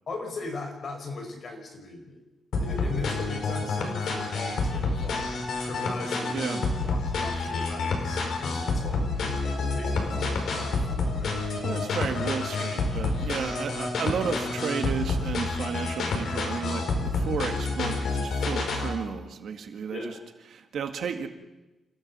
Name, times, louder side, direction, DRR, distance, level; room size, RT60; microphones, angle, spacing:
voice 1, 0.1-2.2 2.6-5.3 5.6-6.4 6.8-11.3 19.9-20.2, left 3 dB, 40° left, 3 dB, 5.2 m, -39 dB
sound 1, 2.5-18.9, left 3 dB, 60° left, 5.4 m, -29 dB
voice 2, 6.3-6.7 11.6-20.2 20.5-21.3, right 6 dB, 60° right, 6 dB, 2.0 m, -33 dB
28.5 x 16.0 x 7.4 m, 1.0 s
wide cardioid pair, 180°, 0 cm